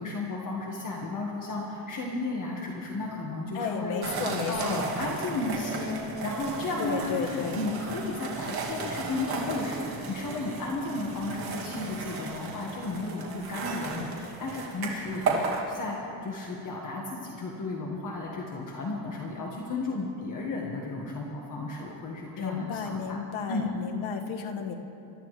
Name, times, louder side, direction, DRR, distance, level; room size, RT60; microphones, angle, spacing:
voice 1, 0.0-23.2 23.5-23.7, left 2 dB, 45° left, -2 dB, 1.7 m, -34 dB
voice 2, 3.5-4.9 6.8-7.6 22.4-24.7, left 6 dB, 90° left, 4 dB, 1.4 m, -33 dB
sound 1, 4.0-15.6, right 4 dB, 55° right, 2.5 m, -35 dB
26.0 x 13.0 x 3.3 m, 2.9 s
cardioid pair, 155°, 46 cm